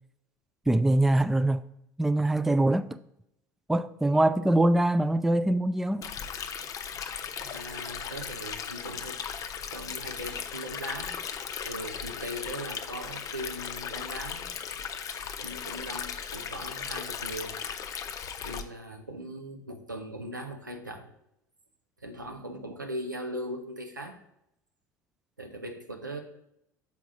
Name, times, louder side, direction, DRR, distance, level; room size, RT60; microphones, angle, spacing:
voice 1, 0.7-1.6 2.0-2.9 3.7-6.1, right 1 dB, 5° right, 0.3 m, -23 dB
Stream, 6.0-18.6, left 7 dB, 35° left, 0.6 m, -37 dB
voice 2, 7.4-9.2 9.7-11.2 11.6-14.5 15.4-17.6 18.4-21.1 22.0-24.2 25.4-26.2, right 1 dB, 85° right, 0.8 m, -39 dB
7.1 x 4.7 x 3.7 m
figure-of-eight pair, 70°, 10 cm